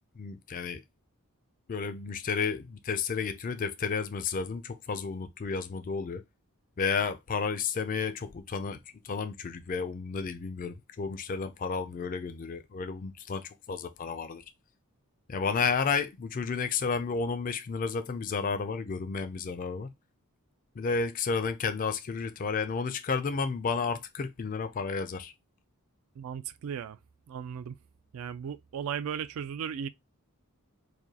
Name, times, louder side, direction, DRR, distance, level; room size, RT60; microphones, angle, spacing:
voice 1, 0.2-0.8 1.7-6.2 6.8-14.4 15.3-19.9 20.8-25.3, left 5 dB, 35° left, 0.4 m, -32 dB
voice 2, 26.2-27.0 27.3-27.7 28.1-29.9, right 8 dB, 65° right, 0.3 m, -36 dB
4.7 x 2.2 x 2.8 m
head